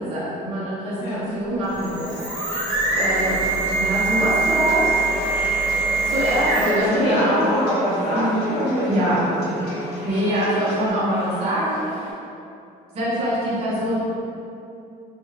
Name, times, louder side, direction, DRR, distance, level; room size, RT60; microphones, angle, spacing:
voice 1, 0.0-2.2 2.9-4.9 5.2-5.3 6.0-7.4 8.1-8.5 8.9-9.3 10.0-11.8 12.9-14.0, equal, 40° right, -9 dB, 0.6 m, -24 dB
sound 1, 1.6-6.9, right 3 dB, 5° right, 1.0 m, -23 dB
sound 2, 2.9-10.9, equal, 80° left, 0.5 m, -35 dB
sound 3, 4.9-12.1, equal, 15° left, 1.3 m, -38 dB
voice 2, 6.5-9.9, equal, 35° left, -13 dB, 0.8 m, -24 dB
2.3 x 2.1 x 3.0 m, 2.6 s
cardioid pair, 110°, 17 cm